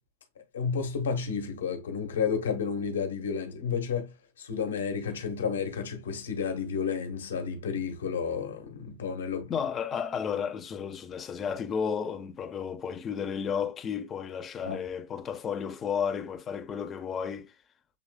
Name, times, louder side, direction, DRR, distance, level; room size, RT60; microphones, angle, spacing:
voice 1, 0.5-9.5 14.6-14.8, left 6 dB, 70° left, 1.3 m, -31 dB
voice 2, 9.5-17.5, left 7 dB, 25° left, 0.7 m, -33 dB
7.5 x 3.1 x 2.2 m
figure-of-eight pair, 100°, 0 cm